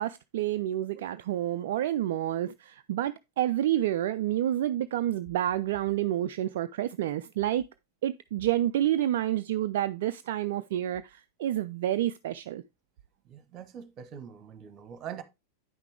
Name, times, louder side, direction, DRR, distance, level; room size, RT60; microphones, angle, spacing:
voice 1, 0.0-7.7 8.0-12.6, right 12 dB, 55° right, 0.3 m, -29 dB
voice 2, 13.3-15.2, right 8 dB, 30° right, 1.1 m, -43 dB
9.2 x 5.8 x 3.3 m
figure-of-eight pair, 90°, 0 cm